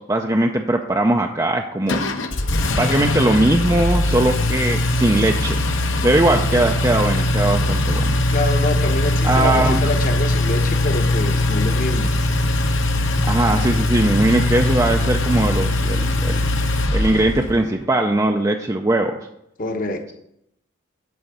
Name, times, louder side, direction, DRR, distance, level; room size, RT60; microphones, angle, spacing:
voice 1, 0.0-2.0 2.7-5.6 6.0-8.2 9.2-9.8 13.2-16.4 16.9-19.2, right 1 dB, 15° right, 3 dB, 0.4 m, -20 dB
Engine, 1.9-17.6, left 1 dB, 65° left, 1.0 m, -20 dB
voice 2, 8.3-12.2 19.6-20.1, left 2 dB, 40° left, 6 dB, 1.0 m, -26 dB
11.0 x 4.6 x 6.6 m, 0.80 s
head